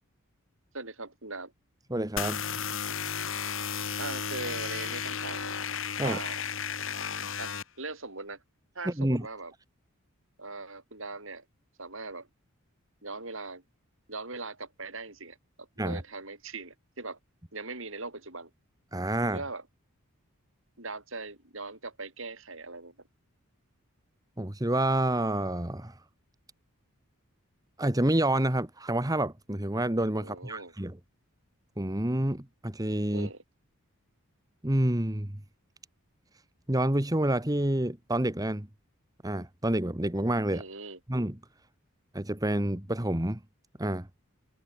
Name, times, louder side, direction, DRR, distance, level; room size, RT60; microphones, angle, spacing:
voice 1, 0.7-1.5 4.0-5.6 6.0-6.4 7.4-8.4 8.7-9.5 10.4-11.4 11.8-12.3 13.0-13.6 14.1-17.2 17.5-18.5 19.2-19.6 20.8-22.9 30.2-30.7 33.1-33.4 40.5-41.0, right 3 dB, 60° right, 6.1 m, -40 dB
voice 2, 1.9-2.4 6.0-6.2 8.8-9.3 15.8-16.0 18.9-19.4 24.4-26.0 27.8-31.0 31.8-33.3 34.6-35.4 36.7-38.7 39.2-40.6 41.1-41.4 42.1-43.4 43.8-44.1, right 1 dB, 15° right, 1.4 m, -28 dB
sound 1, 2.2-7.6, left 7 dB, 60° left, 3.4 m, -33 dB
head